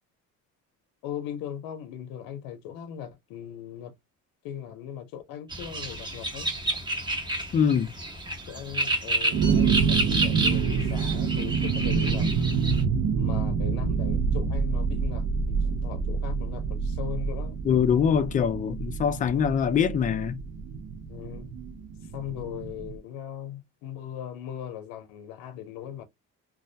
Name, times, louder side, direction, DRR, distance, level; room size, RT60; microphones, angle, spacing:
voice 1, 1.0-3.9 4.4-6.5 8.5-12.3 13.1-17.6 21.1-21.5 22.0-26.0, left 10 dB, 80° left, 0.6 m, -39 dB
sound 1, 5.5-12.8, right 2 dB, 15° right, 0.8 m, -30 dB
voice 2, 7.5-7.9 17.6-20.4, left 7 dB, 25° left, 0.3 m, -23 dB
sound 2, 9.3-23.0, right 5 dB, 50° right, 0.5 m, -27 dB
2.3 x 2.0 x 2.6 m
cardioid pair, 120°, 34 cm